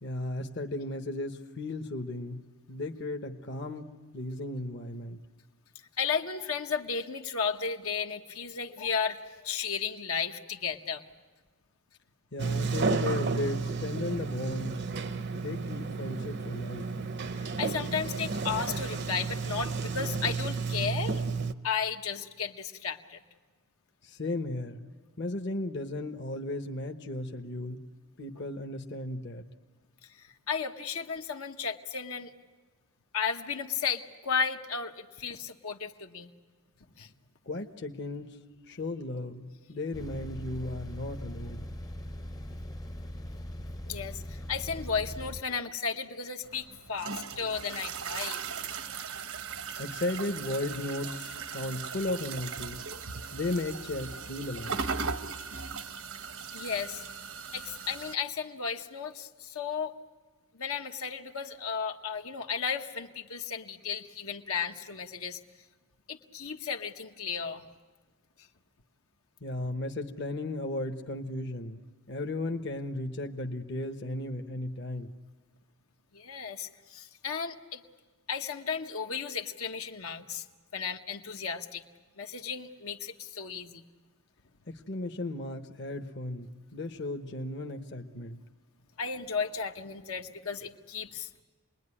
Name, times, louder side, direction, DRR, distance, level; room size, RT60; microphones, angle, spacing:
voice 1, 0.0-5.2 12.3-14.8 15.3-16.9 24.0-24.8 25.2-27.8 28.2-29.4 37.4-38.4 38.7-41.6 49.8-52.8 53.3-54.8 69.4-75.1 84.7-88.4, left 2 dB, 50° left, 4 dB, 1.1 m, -35 dB
voice 2, 6.0-11.0 17.3-21.2 21.6-23.2 30.1-32.3 33.1-36.3 37.0-37.1 43.8-48.4 56.5-57.0 57.5-59.9 60.5-65.4 66.1-67.7 76.1-77.8 78.3-80.4 80.7-81.8 82.2-83.9 89.0-91.4, left 6 dB, 75° left, 3 dB, 1.3 m, -34 dB
Sliding door, 12.4-21.5, right 4 dB, 50° right, 0.7 m, -32 dB
sound 1, 39.9-45.4, equal, 15° left, 0.7 m, -40 dB
sound 2, 46.4-58.1, right 5 dB, 70° right, 1.0 m, -38 dB
28.0 x 21.0 x 9.9 m, 1.4 s
head